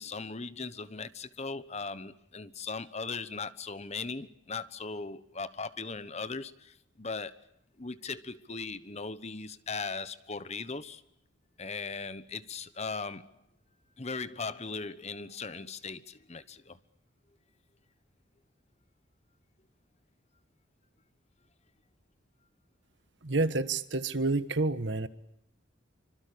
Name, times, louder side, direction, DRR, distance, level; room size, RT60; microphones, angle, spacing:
voice 1, 0.0-7.4 7.8-11.0 11.6-13.3 14.0-16.8, left 4 dB, 35° left, 14 dB, 1.1 m, -38 dB
voice 2, 23.2-25.1, right 3 dB, 60° right, 12 dB, 1.5 m, -29 dB
26.0 x 25.5 x 8.5 m, 0.74 s
head